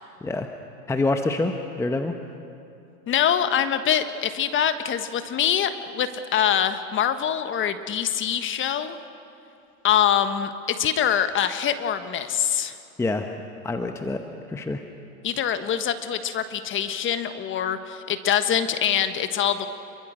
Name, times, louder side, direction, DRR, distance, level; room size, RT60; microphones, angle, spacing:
voice 1, 0.9-2.1 13.0-13.3 13.6-14.2 14.5-14.8, left 2 dB, 5° left, 6 dB, 0.9 m, -26 dB
voice 2, 3.1-9.0 9.8-12.7 15.2-19.7, left 9 dB, 25° left, 10 dB, 1.4 m, -24 dB
28.0 x 23.0 x 6.5 m, 2.7 s
hypercardioid pair, 115°, 46 cm